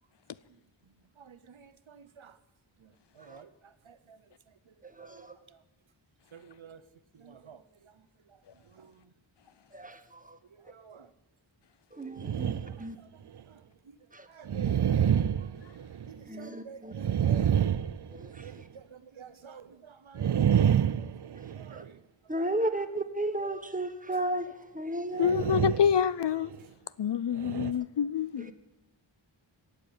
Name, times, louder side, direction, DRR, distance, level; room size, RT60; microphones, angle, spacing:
voice 1, 1.2-2.4 2.8-4.2 4.7-5.6 6.3-6.8 7.1-8.4 8.6-9.1 10.5-11.1 12.1-13.1 13.5-13.6 13.9-14.0 14.3-14.9 15.3-15.7 16.1-17.6 18.4-22.0 22.4-22.8 26.6-26.7, right 6 dB, 85° right, 0.8 m, -51 dB
voice 2, 5.0-5.3 9.7-10.4 11.9-13.0 14.1-14.3 16.3-16.9 18.1-18.4 21.7-21.8 22.3-25.5 28.4-28.5, right 1 dB, 15° right, 1.2 m, -34 dB
sound 1, 12.2-12.9 13.4-13.5 14.5-16.3 16.9-18.6 20.1-21.9 25.2-26.0 26.4-26.6 27.4-27.7, right 9 dB, 60° right, 0.5 m, -28 dB
voice 3, 25.2-26.5 27.0-28.5, left 8 dB, 65° left, 0.5 m, -27 dB
16.5 x 7.2 x 8.9 m
wide cardioid pair, 50°, 46 cm